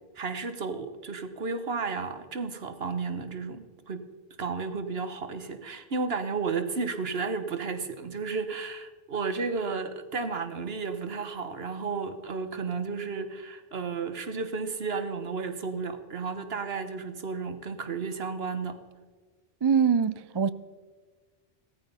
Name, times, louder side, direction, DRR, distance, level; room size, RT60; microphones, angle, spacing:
voice 1, 0.2-4.1 4.4-18.8, right 4 dB, 70° right, 1.4 m, -33 dB
voice 2, 19.6-20.5, right 6 dB, 40° right, 0.4 m, -23 dB
16.5 x 13.5 x 5.5 m
omnidirectional pair, 1.0 m